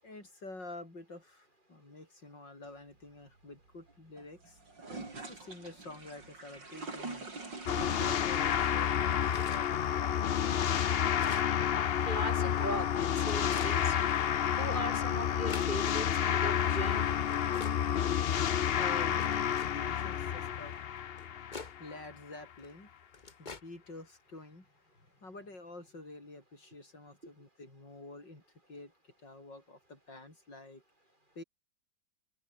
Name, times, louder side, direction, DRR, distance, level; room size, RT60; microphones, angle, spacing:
voice 1, 0.0-4.6 5.3-7.3 8.1-11.2 18.7-21.0 21.8-22.9 23.4-24.6 25.2-28.4 28.7-30.8 31.3-31.4, left 2 dB, 80° left, 8.4 m, -49 dB
sound 1, 2.6-20.8, right 3 dB, 85° right, 5.8 m, -50 dB
sound 2, 7.7-22.0, left 9 dB, 60° left, 0.6 m, -30 dB
sound 3, 9.3-9.7 10.3-10.4 10.9-11.5 12.4-12.6 13.2-13.8 14.6-14.7 15.1-15.7 16.6-16.7 17.3-17.8 18.5-18.6 19.2-19.7 20.7-20.8 21.2-21.7 22.6-22.7 23.1-23.6, left 4 dB, 25° left, 1.5 m, -45 dB
voice 2, 12.0-14.0 14.6-17.2, right 1 dB, 25° right, 4.8 m, -39 dB
open air
omnidirectional pair, 1.9 m